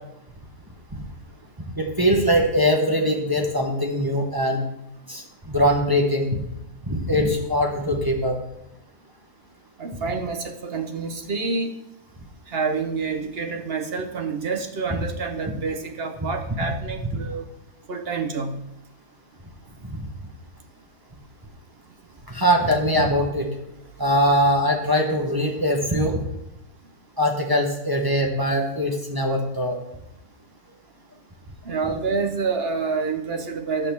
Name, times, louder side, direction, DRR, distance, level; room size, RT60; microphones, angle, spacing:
voice 1, 1.8-4.6 5.1-6.4 6.9-8.4 19.9-20.0 22.3-23.5 24.0-26.2 27.2-29.8, equal, 15° right, 0 dB, 1.0 m, -22 dB
voice 2, 9.8-11.7 12.5-17.4 17.9-18.6 31.6-33.9, right 4 dB, 45° right, 5 dB, 0.9 m, -28 dB
11.0 x 4.1 x 7.0 m, 0.85 s
omnidirectional pair, 1.7 m